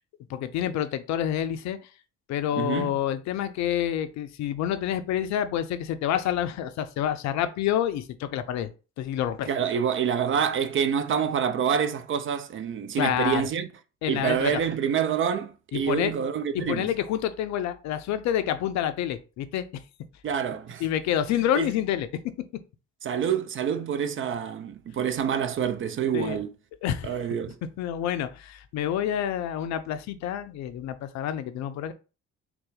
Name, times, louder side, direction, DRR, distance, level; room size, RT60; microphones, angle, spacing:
voice 1, 0.3-1.8 2.3-8.7 9.0-9.5 13.0-13.4 14.0-14.6 15.7-16.1 16.5-19.7 20.8-22.1 26.1-26.4 26.8-27.1 27.8-31.9, left 10 dB, 50° left, 0.5 m, -28 dB
voice 2, 2.6-2.9 9.5-13.7 14.1-16.9 20.2-20.8 21.5-21.7 23.0-26.5 27.0-27.6, right 8 dB, 35° right, 0.5 m, -27 dB
3.8 x 2.3 x 3.9 m
figure-of-eight pair, 45°, 38 cm